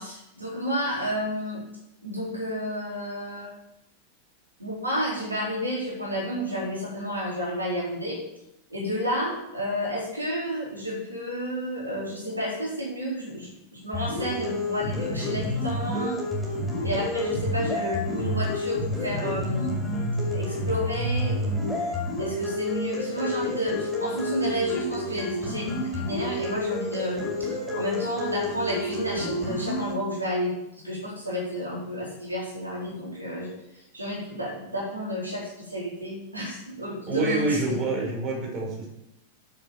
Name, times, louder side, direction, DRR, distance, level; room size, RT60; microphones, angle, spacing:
voice 1, 0.0-1.6 2.0-3.5 4.6-8.2 8.7-16.2 16.8-19.8 20.2-21.8 22.2-30.5 30.8-37.7, equal, 80° right, -5 dB, 4.3 m, -31 dB
sound 1, 13.9-29.9, left 1 dB, 5° right, 5.7 m, -29 dB
voice 2, 37.1-38.9, right 3 dB, 30° right, -2 dB, 5.2 m, -27 dB
9.4 x 7.9 x 7.2 m, 0.85 s
figure-of-eight pair, 90°, 0 cm